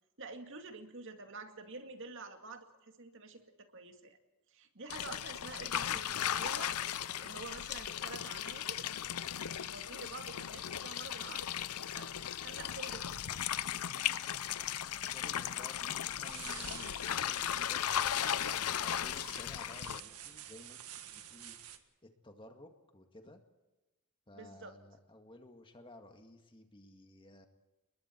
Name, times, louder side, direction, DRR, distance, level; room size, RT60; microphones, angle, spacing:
voice 1, 0.2-4.2 4.5-6.8 7.2-8.8 9.6-11.5 11.9-13.6 24.3-24.8, right 3 dB, 60° right, 6 dB, 2.2 m, -48 dB
sound 1, 4.9-20.0, left 10 dB, 90° left, 0.7 m, -37 dB
voice 2, 14.9-20.8 21.1-21.7 22.0-23.4 24.3-27.5, left 1 dB, 25° left, 5 dB, 2.1 m, -55 dB
sound 2, 16.2-21.8, right 10 dB, 90° right, 1.8 m, -50 dB
30.0 x 21.5 x 4.6 m, 1.1 s
head